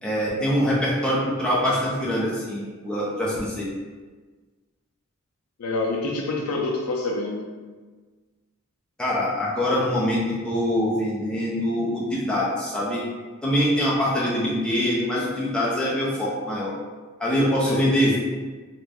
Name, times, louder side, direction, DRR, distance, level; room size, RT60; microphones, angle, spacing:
voice 1, 0.0-3.7 9.0-13.0 13.4-16.7 17.2-18.2, equal, 5° left, -7 dB, 0.5 m, -24 dB
voice 2, 5.6-7.5 17.7-17.9, left 2 dB, 85° left, 1 dB, 0.4 m, -27 dB
2.5 x 2.3 x 3.3 m, 1.4 s
head